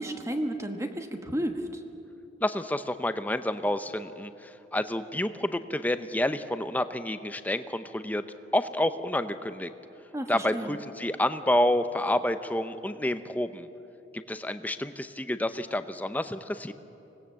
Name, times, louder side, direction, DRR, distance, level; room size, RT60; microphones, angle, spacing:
voice 1, 0.0-1.8 10.1-10.8, right 1 dB, 15° right, 5 dB, 1.2 m, -32 dB
voice 2, 2.4-8.2 8.5-9.7 10.3-13.7 14.1-16.7, left 1 dB, 10° left, 10 dB, 0.7 m, -29 dB
25.0 x 19.0 x 7.5 m, 2.8 s
head